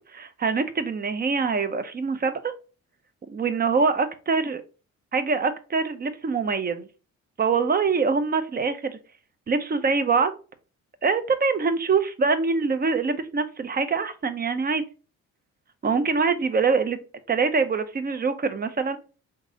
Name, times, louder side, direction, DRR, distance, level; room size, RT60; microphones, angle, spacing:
voice 1, 0.1-2.5 3.3-4.6 5.1-6.9 7.4-9.0 9.5-10.4 11.0-14.8 15.8-17.0 17.3-19.0, right 4 dB, 30° right, 10 dB, 0.6 m, -24 dB
3.8 x 2.6 x 3.9 m, 0.35 s
cardioid pair, 90°, 30 cm